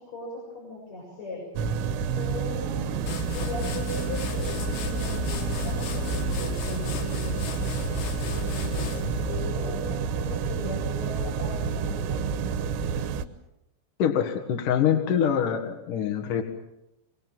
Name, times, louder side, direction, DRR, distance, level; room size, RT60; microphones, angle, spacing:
voice 1, 0.0-1.4 2.1-3.0 3.3-7.5 8.3-12.3, left 2 dB, 35° left, -2 dB, 8.4 m, -38 dB
sound 1, 1.6-13.3, right 6 dB, 90° right, 3.4 m, -29 dB
sound 2, 3.1-9.6, left 7 dB, 85° left, 4.1 m, -34 dB
voice 2, 14.0-16.4, left 8 dB, 55° left, 4 dB, 2.9 m, -24 dB
24.0 x 23.5 x 7.4 m, 0.91 s
omnidirectional pair, 5.1 m